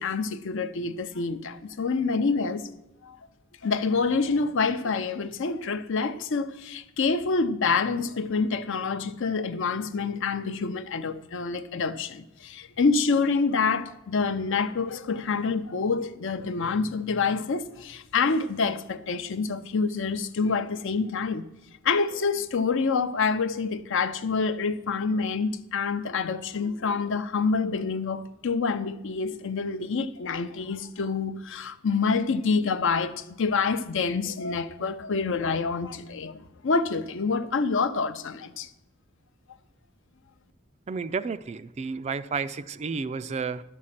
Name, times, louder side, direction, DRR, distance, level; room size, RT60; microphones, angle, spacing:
voice 1, 0.0-2.7 3.0-3.2 3.6-21.5 21.8-38.7, left 4 dB, 65° left, 0.6 m, -27 dB
voice 2, 40.9-43.6, right 5 dB, 30° right, 0.3 m, -31 dB
11.5 x 6.4 x 5.7 m
head